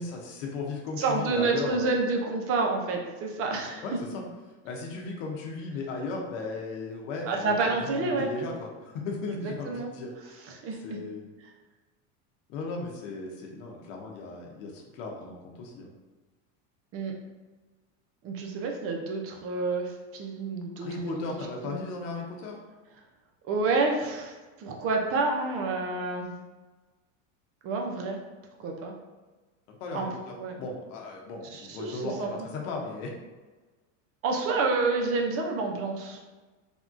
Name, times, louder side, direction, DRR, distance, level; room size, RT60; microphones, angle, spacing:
voice 1, 0.0-1.8 3.8-4.2 4.6-10.5 10.8-11.2 12.5-15.9 20.8-22.6 29.7-33.1, left 3 dB, 70° left, 0 dB, 0.8 m, -36 dB
voice 2, 1.0-3.8 7.3-8.3 9.4-9.9 10.6-11.0 16.9-17.1 18.2-21.8 23.4-26.3 27.6-28.2 28.6-28.9 29.9-30.1 30.4-30.6 31.5-32.5 34.2-36.2, right 3 dB, 35° right, 2 dB, 0.5 m, -29 dB
3.5 x 2.3 x 2.5 m, 1.2 s
supercardioid pair, 135°, 39 cm